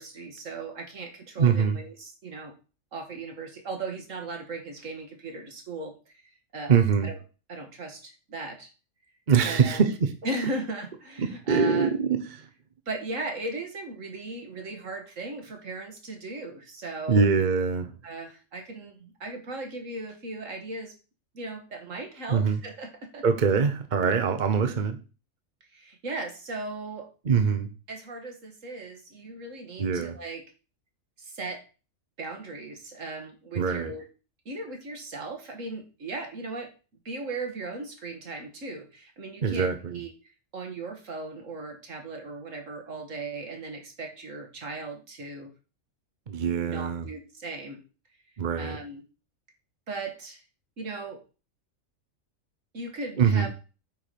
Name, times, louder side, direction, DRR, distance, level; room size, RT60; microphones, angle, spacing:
voice 1, 0.0-2.5 2.9-7.2 7.5-8.7 9.4-9.9 10.2-11.9 12.9-17.3 18.0-20.9 21.3-23.2 25.7-27.1 27.9-30.4 31.2-31.6 32.2-34.0 34.5-36.7 37.1-40.1 40.5-45.5 46.6-47.8 48.6-49.0 49.9-50.4 50.8-51.2 52.7-53.5, right 2 dB, 70° right, 4 dB, 2.1 m, -37 dB
voice 2, 1.4-1.8 6.7-7.1 9.3-10.1 11.2-12.5 17.1-17.9 22.3-22.6 23.2-25.0 27.3-27.7 29.8-30.2 33.6-33.9 39.4-40.0 46.3-47.0 48.4-48.8 53.2-53.5, right 6 dB, 40° right, 8 dB, 0.9 m, -23 dB
8.9 x 4.7 x 5.3 m, 0.34 s
omnidirectional pair, 1.4 m